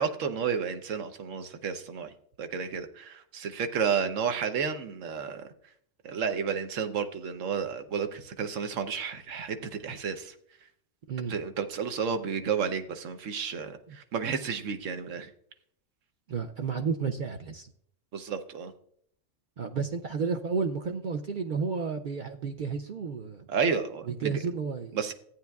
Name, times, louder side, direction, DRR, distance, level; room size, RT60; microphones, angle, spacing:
voice 1, 0.0-2.1 2.4-5.5 6.0-10.3 11.3-15.3 18.1-18.7 23.5-24.1 24.9-25.1, right 6 dB, 85° right, 8 dB, 1.2 m, -31 dB
voice 2, 11.1-11.4 13.9-14.0 16.3-17.7 19.6-23.5 24.1-25.0, right 5 dB, 55° right, 5 dB, 0.5 m, -32 dB
14.5 x 8.8 x 2.3 m, 0.68 s
omnidirectional pair, 1.3 m